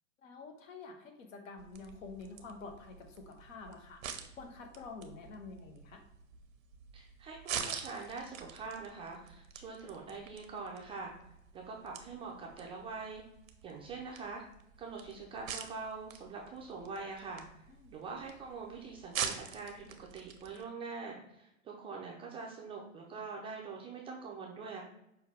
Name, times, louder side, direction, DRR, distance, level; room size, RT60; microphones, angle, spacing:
voice 1, 0.2-6.0 17.7-17.9, left 4 dB, 75° left, 4 dB, 1.0 m, -48 dB
sound 1, 1.6-20.6, right 7 dB, 80° right, 0.7 m, -46 dB
voice 2, 6.9-11.1 11.5-13.2 13.6-14.4 14.8-17.6 17.9-24.8, right 4 dB, 15° right, -1 dB, 0.4 m, -44 dB
5.4 x 2.3 x 3.3 m, 0.83 s
hypercardioid pair, 105°, 39 cm